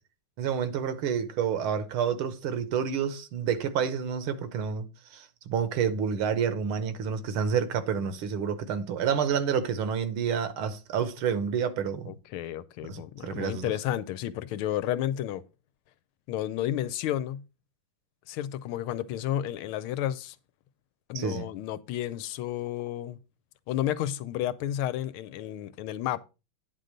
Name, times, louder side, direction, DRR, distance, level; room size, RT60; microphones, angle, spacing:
voice 1, 0.4-4.8 5.1-12.1 12.9-13.7 21.1-21.5, right 7 dB, 75° right, 1.8 m, -29 dB
voice 2, 12.1-15.4 16.3-17.4 18.3-20.4 21.1-23.2 23.7-26.2, left 12 dB, 80° left, 1.5 m, -31 dB
9.5 x 3.8 x 6.5 m
omnidirectional pair, 2.4 m